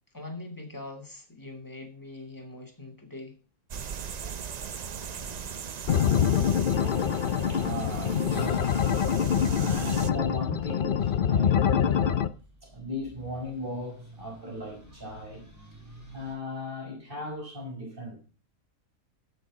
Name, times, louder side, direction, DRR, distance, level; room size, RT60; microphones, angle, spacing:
voice 1, 0.1-3.4 5.2-5.5, left 2 dB, 15° left, 2.4 m, -42 dB
sound 1, 3.7-10.1, right 7 dB, 60° right, 0.4 m, -38 dB
sound 2, 4.9-16.4, right 1 dB, 10° right, 3.9 m, -53 dB
sound 3, 5.9-12.3, left 8 dB, 50° left, 0.6 m, -25 dB
voice 2, 7.5-8.7 9.4-12.3 12.6-15.5 16.1-18.2, left 1 dB, 35° right, 5.6 m, -37 dB
14.5 x 6.8 x 4.9 m
omnidirectional pair, 1.5 m